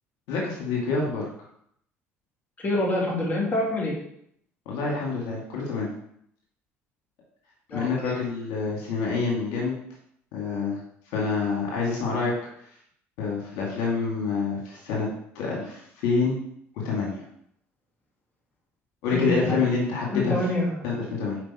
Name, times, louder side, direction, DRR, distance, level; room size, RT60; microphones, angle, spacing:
voice 1, 0.3-1.3 4.7-5.9 7.7-9.8 10.3-10.8 11.1-12.3 13.2-15.1 15.3-16.4 16.8-17.2 19.0-20.4 20.8-21.4, left 4 dB, 70° left, -3 dB, 2.3 m, -27 dB
voice 2, 2.6-3.9 7.7-8.1 19.1-19.6 20.1-20.9, left 1 dB, 25° left, -2 dB, 2.6 m, -26 dB
6.1 x 5.2 x 4.3 m, 0.71 s
hypercardioid pair, 65°, 7 cm